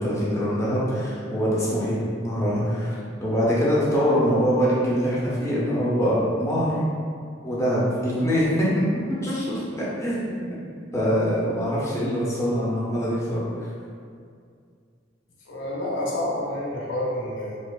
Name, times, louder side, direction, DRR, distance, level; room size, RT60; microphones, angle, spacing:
voice 1, 0.0-2.9 3.2-6.8 7.4-8.7 9.1-10.4 10.9-13.7, equal, 15° left, -7 dB, 0.5 m, -24 dB
voice 2, 15.5-17.6, left 1 dB, 85° left, -4 dB, 0.6 m, -28 dB
2.7 x 2.0 x 2.3 m, 2.2 s
head